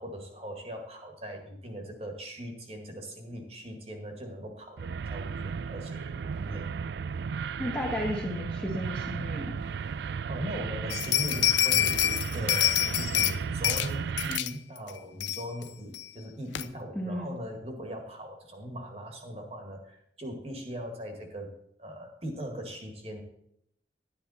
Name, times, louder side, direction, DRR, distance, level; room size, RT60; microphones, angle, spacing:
voice 1, 0.0-6.7 10.1-21.5 21.8-23.2, equal, 35° right, 3 dB, 1.8 m, -40 dB
sound 1, 4.8-14.4, right 6 dB, 65° right, 0.3 m, -35 dB
voice 2, 7.6-9.6 16.9-17.4, equal, 5° left, -1 dB, 1.4 m, -33 dB
sound 2, 10.9-13.3 13.6-13.9 14.2-14.5 14.9-15.0 15.2-15.6 15.9-16.0 16.6-16.7, left 13 dB, 80° left, 0.5 m, -26 dB
11.5 x 10.5 x 4.2 m, 0.73 s
head